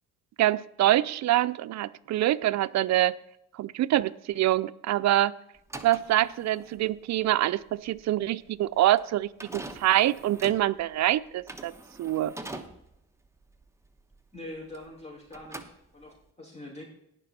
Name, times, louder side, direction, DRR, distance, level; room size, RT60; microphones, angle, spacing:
voice 1, 0.4-3.2 3.6-5.3 5.8-11.7 12.0-12.3, right 14 dB, 65° right, 0.5 m, -25 dB
sound 1, 5.6-15.0 15.3-16.3, right 2 dB, 10° right, 1.1 m, -44 dB
voice 2, 14.3-16.8, left 1 dB, 20° left, 5.1 m, -44 dB
18.0 x 6.1 x 4.2 m
cardioid pair, 90°, 30 cm